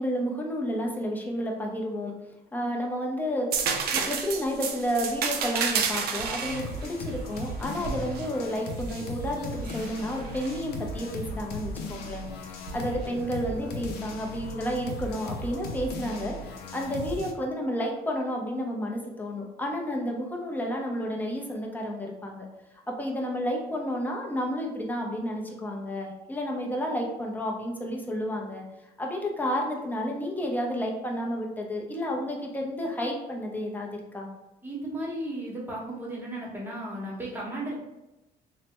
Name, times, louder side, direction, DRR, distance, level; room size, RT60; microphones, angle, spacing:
voice 1, 0.0-2.1 2.5-12.3 12.7-16.4 16.7-22.5 22.9-28.6 29.0-34.3, equal, 10° left, 0 dB, 0.6 m, -31 dB
sound 1, 3.5-9.1 9.6-10.6 12.7-12.8, right 6 dB, 65° right, 0.4 m, -31 dB
sound 2, 6.4-17.3, left 1 dB, 75° left, 0.5 m, -37 dB
voice 2, 34.6-37.7, right 1 dB, 10° right, -4 dB, 1.0 m, -35 dB
3.2 x 2.1 x 2.9 m, 0.98 s
cardioid pair, 110°, 17 cm